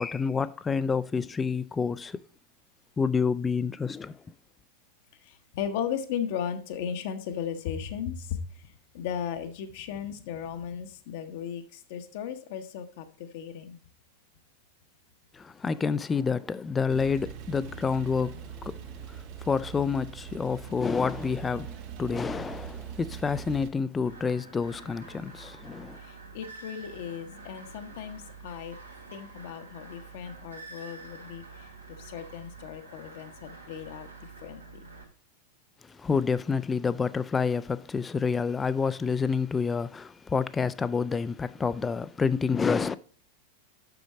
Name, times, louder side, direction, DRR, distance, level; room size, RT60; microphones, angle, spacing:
voice 1, 0.0-2.2 3.0-4.2 15.3-26.0 35.9-43.0, left 5 dB, 15° left, 0.4 m, -28 dB
voice 2, 5.2-13.8 20.7-20.8 26.0-28.8 29.1-34.9, left 8 dB, 50° left, 0.9 m, -36 dB
Male speech man speaking / Car / Idling, 16.9-23.7, right 9 dB, 45° right, 0.7 m, -42 dB
sound 1, 24.0-35.0, right 3 dB, 90° right, 2.4 m, -47 dB
7.0 x 6.2 x 4.1 m
figure-of-eight pair, 90°, 0 cm